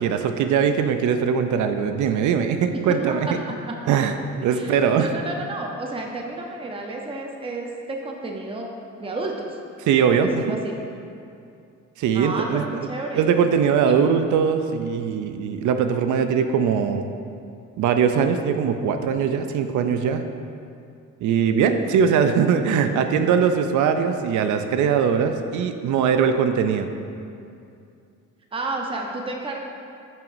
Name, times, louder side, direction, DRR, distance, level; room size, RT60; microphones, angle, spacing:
voice 1, 0.0-3.3 3.9-5.1 9.9-10.6 12.0-12.6 13.1-17.1 17.8-20.2 21.2-26.9, right 7 dB, 75° right, 7 dB, 0.5 m, -21 dB
voice 2, 4.5-8.7 9.0-9.6 10.1-10.8 12.1-13.3 28.5-29.6, right 2 dB, 20° right, 0 dB, 0.7 m, -31 dB
8.9 x 5.7 x 2.6 m, 2.5 s
cardioid pair, 90°, 30 cm